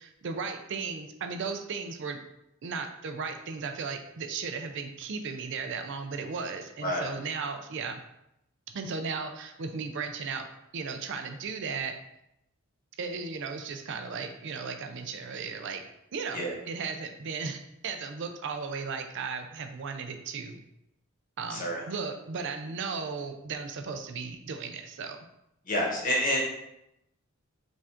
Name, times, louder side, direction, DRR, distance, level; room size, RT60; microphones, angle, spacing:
voice 1, 0.0-2.2 2.6-8.0 8.7-10.5 10.7-12.0 13.0-15.8 16.1-20.6 21.4-25.2, right 5 dB, 55° right, 6 dB, 0.5 m, -36 dB
voice 2, 21.5-21.9 25.7-26.4, equal, 40° left, -2 dB, 1.1 m, -28 dB
5.1 x 2.5 x 3.5 m, 0.82 s
head